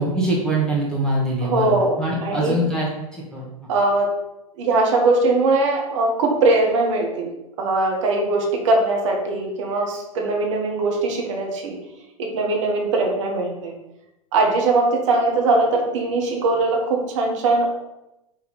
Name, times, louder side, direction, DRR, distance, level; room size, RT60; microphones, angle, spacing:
voice 1, 0.0-3.5, right 1 dB, 5° left, -6 dB, 1.7 m, -23 dB
voice 2, 1.4-1.9 2.2-2.6 3.7-4.1 4.6-7.3 7.6-11.7 12.2-13.7 14.3-17.7, right 2 dB, 55° right, 1 dB, 1.4 m, -20 dB
5.7 x 3.5 x 4.8 m, 0.93 s
figure-of-eight pair, 95°, 18 cm